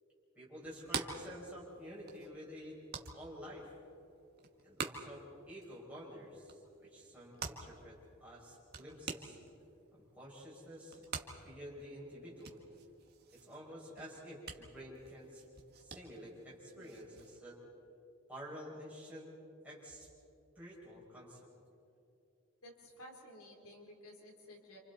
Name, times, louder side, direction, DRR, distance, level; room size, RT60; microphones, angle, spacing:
voice 1, 0.3-2.8 3.1-3.7 4.6-9.4 9.9-11.1 11.4-12.6 13.3-15.5 15.8-17.6 18.3-19.3 19.6-20.1 20.5-21.4, equal, 5° right, -6 dB, 6.7 m, -50 dB
sound 1, 0.6-17.4, right 5 dB, 45° right, 1.7 m, -48 dB
voice 2, 22.6-24.8, left 1 dB, 80° left, 0 dB, 3.9 m, -54 dB
29.0 x 27.5 x 4.3 m, 2.6 s
head